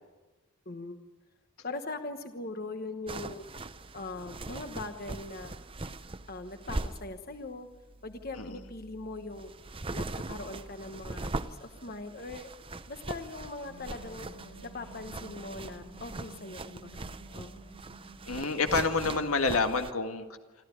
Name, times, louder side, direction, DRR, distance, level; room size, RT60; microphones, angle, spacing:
voice 1, 0.7-1.0 1.6-3.5 3.9-5.5 6.3-7.7 8.0-9.5 9.9-12.5 12.9-14.3 14.6-17.6, left 2 dB, 45° left, 7 dB, 1.2 m, -41 dB
sound 1, 3.1-19.9, right 2 dB, 25° right, 0.7 m, -41 dB
sound 2, 13.6-19.3, right 1 dB, 60° left, 7.5 m, -51 dB
voice 2, 18.3-20.3, left 4 dB, 80° left, 6 dB, 1.9 m, -28 dB
26.0 x 14.0 x 9.7 m, 1.2 s
head